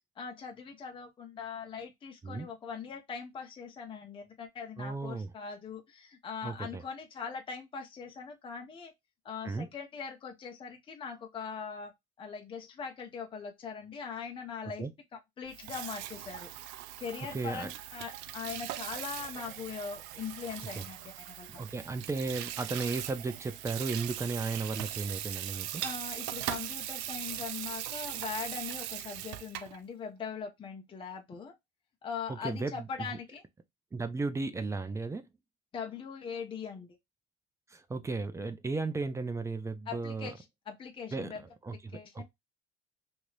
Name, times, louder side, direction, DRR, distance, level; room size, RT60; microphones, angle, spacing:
voice 1, 0.2-8.9 9.2-11.9 12.2-14.8 15.4-16.5 17.0-21.6 25.8-31.5 32.0-33.4 35.7-36.9 39.9-41.4 41.9-42.2, left 6 dB, 30° left, 0.7 m, -41 dB
voice 2, 4.8-5.3 6.4-6.8 9.4-9.7 14.8-14.9 17.3-17.7 20.8-20.9 21.6-25.8 32.3-32.9 33.9-35.3 37.7-40.3 41.1-41.3 41.6-42.2, right 3 dB, 15° right, 0.5 m, -35 dB
Water tap faucet / Sink (filling or washing), 15.5-29.8, right 13 dB, 80° right, 0.4 m, -40 dB
2.7 x 2.6 x 3.1 m
supercardioid pair, 105°, 18 cm